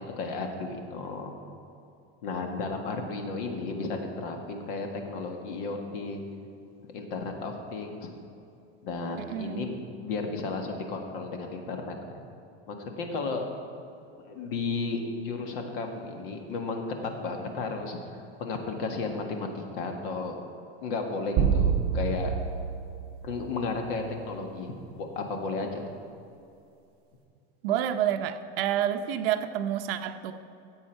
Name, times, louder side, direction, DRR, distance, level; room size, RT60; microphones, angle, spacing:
voice 1, 0.0-1.3 2.2-6.2 6.9-8.1 8.8-11.9 12.7-13.4 14.2-20.4 20.8-22.3 23.2-25.8, left 3 dB, 55° left, 4 dB, 1.6 m, -33 dB
voice 2, 9.3-9.7 27.6-30.3, right 10 dB, 60° right, 7 dB, 0.7 m, -28 dB
sound 1, 21.4-23.9, right 7 dB, 30° right, 1.0 m, -27 dB
14.0 x 8.1 x 4.6 m, 2.6 s
supercardioid pair, 170°, 32 cm